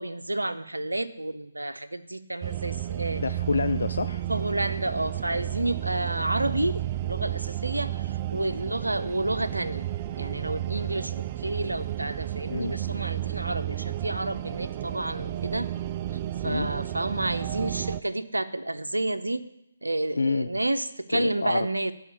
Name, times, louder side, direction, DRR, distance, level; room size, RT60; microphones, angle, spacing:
voice 1, 0.0-3.2 4.3-9.9 10.1-15.7 16.4-19.5 19.8-21.9, right 1 dB, 85° right, 11 dB, 0.7 m, -30 dB
sound 1, 2.4-18.0, right 13 dB, 30° right, 0.3 m, -32 dB
voice 2, 3.2-4.2 12.5-12.7 16.4-16.7 20.1-20.5 21.1-21.7, left 4 dB, 65° left, 11 dB, 0.4 m, -27 dB
9.4 x 5.6 x 7.1 m, 0.79 s
figure-of-eight pair, 145°, 0 cm